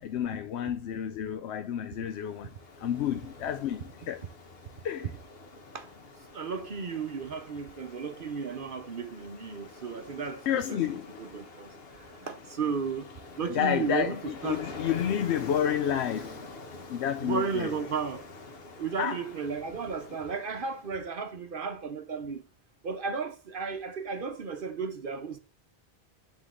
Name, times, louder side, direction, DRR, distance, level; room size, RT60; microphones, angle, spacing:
voice 1, 0.0-2.5 2.8-4.2 4.8-5.1 10.5-11.2 13.5-16.5 16.9-17.7 19.0-19.2, left 10 dB, 90° left, 0.9 m, -30 dB
Ocean, 2.0-21.1, left 3 dB, 65° left, 1.2 m, -46 dB
voice 2, 6.3-11.7 12.2-13.1 13.4-14.6 17.2-18.2 18.8-22.4 22.8-25.4, right 5 dB, 60° right, 0.9 m, -34 dB
9.7 x 3.8 x 3.6 m
omnidirectional pair, 1.1 m